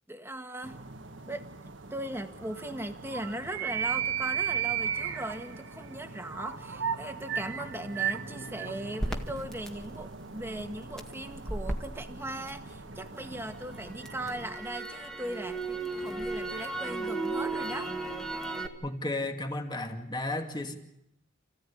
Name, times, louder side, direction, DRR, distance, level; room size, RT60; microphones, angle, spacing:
voice 1, 0.1-0.8 1.2-1.5 1.9-17.9, right 1 dB, 15° right, 7 dB, 1.8 m, -39 dB
sound 1, 0.6-14.6, right 7 dB, 80° right, 1.6 m, -37 dB
Crackle, 9.0-13.1 13.5-18.7, right 2 dB, 5° left, 1.9 m, -35 dB
voice 2, 18.8-20.8, left 2 dB, 25° left, 5 dB, 2.5 m, -33 dB
29.5 x 16.0 x 10.0 m, 0.84 s
head